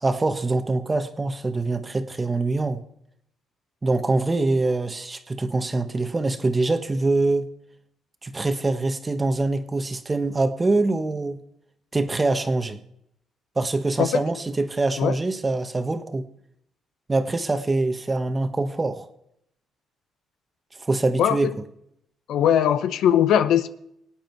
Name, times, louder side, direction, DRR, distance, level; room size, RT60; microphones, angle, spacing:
voice 1, 0.0-2.8 3.8-7.5 8.2-11.4 11.9-12.8 13.5-16.2 17.1-19.1 20.8-21.5, right 2 dB, 25° right, 1.3 m, -24 dB
voice 2, 21.2-21.5 22.3-23.7, left 9 dB, 80° left, 0.7 m, -20 dB
25.5 x 9.0 x 4.6 m
cardioid pair, 90°, 0 cm